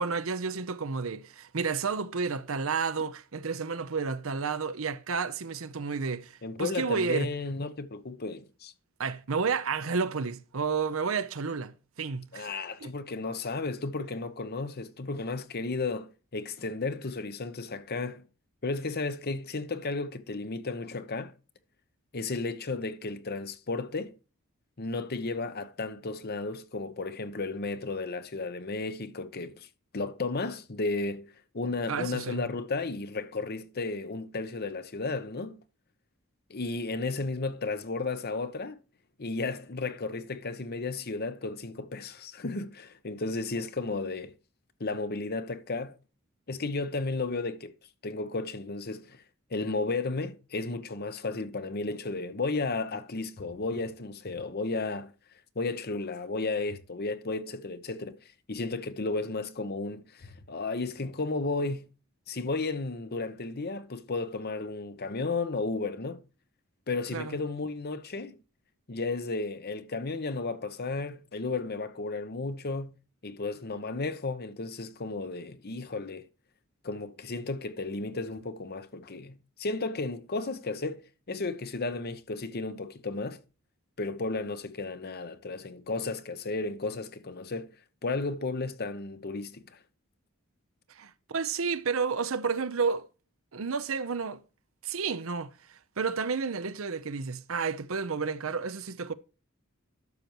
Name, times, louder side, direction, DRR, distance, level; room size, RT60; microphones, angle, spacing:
voice 1, 0.0-7.3 9.0-12.5 12.8-12.9 31.9-32.4 67.1-67.4 90.9-93.1 93.5-94.4 94.8-99.1, right 5 dB, 70° right, 0.7 m, -31 dB
voice 2, 6.4-8.7 12.3-18.2 18.6-21.3 22.1-24.2 24.8-29.7 29.9-35.6 36.5-38.8 39.2-44.3 44.8-46.0 46.5-47.7 48.0-49.2 49.5-55.1 55.6-58.2 58.5-61.9 62.3-66.2 66.9-68.4 68.9-76.3 76.8-83.4 84.0-87.7 88.0-89.8, left 3 dB, 50° left, 0.9 m, -33 dB
12.0 x 6.8 x 3.0 m
head